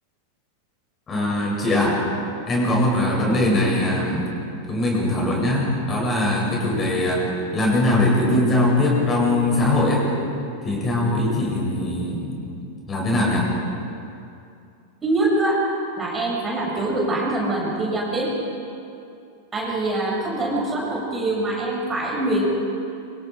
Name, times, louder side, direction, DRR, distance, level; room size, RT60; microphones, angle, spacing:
voice 1, 1.1-2.1 2.5-7.3 7.5-10.1 10.6-12.4 12.9-13.5, left 1 dB, 20° left, -2 dB, 7.9 m, -21 dB
voice 2, 15.0-15.6 16.0-18.4 19.5-22.5, right 2 dB, 15° right, -3 dB, 7.1 m, -24 dB
28.0 x 26.0 x 5.2 m, 2.6 s
figure-of-eight pair, 90°, 0 cm